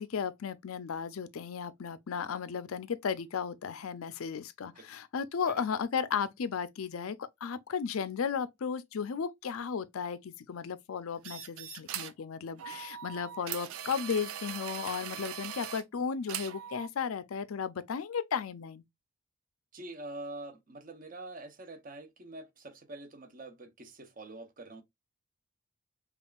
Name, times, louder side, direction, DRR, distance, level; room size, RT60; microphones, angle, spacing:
voice 1, 0.0-18.8, left 6 dB, 85° left, 0.5 m, -35 dB
sound 1, 11.2-12.2 12.6-15.8 16.3-16.9, right 10 dB, 90° right, 0.5 m, -40 dB
voice 2, 19.7-24.8, right 2 dB, 40° right, 0.7 m, -45 dB
5.2 x 2.4 x 2.3 m
head